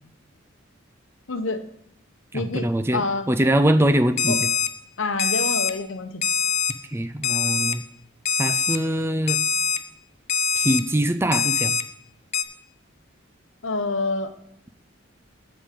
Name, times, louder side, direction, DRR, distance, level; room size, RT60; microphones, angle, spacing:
voice 1, 1.3-1.6 2.3-3.3 4.3-4.4 5.0-6.2 13.6-14.3, left 3 dB, 70° left, 9 dB, 0.9 m, -27 dB
voice 2, 2.3-3.0 3.3-4.5 6.9-7.8 8.4-9.4 10.5-11.8, right 1 dB, 10° right, 10 dB, 0.4 m, -22 dB
Alarm, 4.2-4.7 5.2-5.7 6.2-6.7 7.2-7.7 8.3-8.8 9.3-9.8 10.3-10.8 11.3-11.8 12.3-12.4, left 7 dB, 35° left, 0.6 m, -23 dB
13.0 x 5.1 x 5.1 m, 0.74 s
head